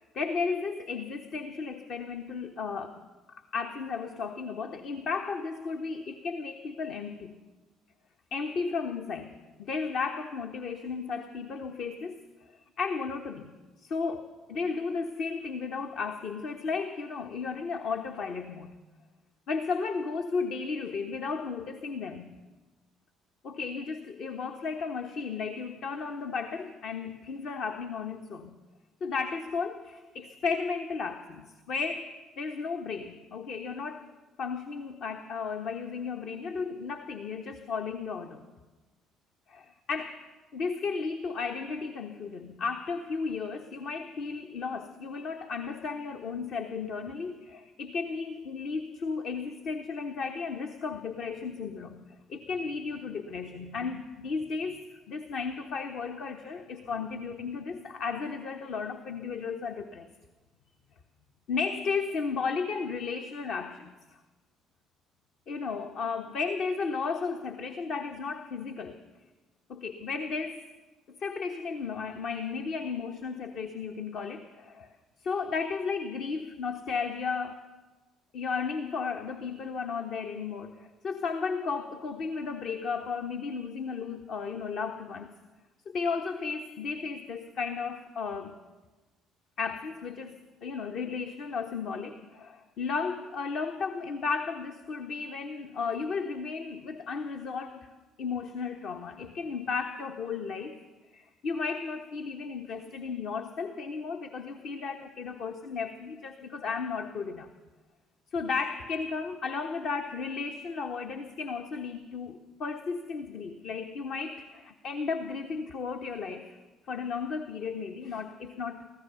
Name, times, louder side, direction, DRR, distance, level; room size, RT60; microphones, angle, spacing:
voice 1, 0.0-3.0 3.3-7.3 8.3-13.5 13.8-18.7 19.5-22.3 23.4-28.5 29.0-32.1 32.4-34.1 34.4-38.4 39.5-40.2 40.5-60.1 61.5-63.9 65.5-69.0 69.7-70.6 71.2-74.9 75.2-77.6 78.3-85.3 85.9-88.6 89.6-97.9 98.2-100.8 101.1-107.5 108.3-116.5 116.9-118.8, left 5 dB, 55° left, 5 dB, 1.2 m, -34 dB
24.5 x 15.5 x 7.0 m, 1.3 s
figure-of-eight pair, 50°, 0 cm